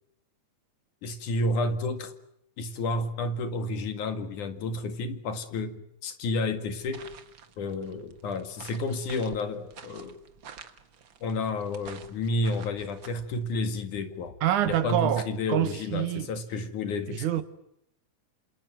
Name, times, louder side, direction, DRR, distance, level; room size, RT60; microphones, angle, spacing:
voice 1, 1.0-2.2 2.6-7.1 7.6-10.2 11.2-14.4 14.7-17.2, left 2 dB, 80° left, 3.5 m, -31 dB
sound 1, 6.8-13.1, right 6 dB, 45° right, 1.9 m, -49 dB
sound 2, 11.6-14.9 15.3-15.4, left 5 dB, 60° left, 3.3 m, -51 dB
voice 2, 14.4-16.3 17.1-17.4, right 11 dB, 80° right, 2.9 m, -26 dB
27.5 x 27.5 x 6.2 m
omnidirectional pair, 3.5 m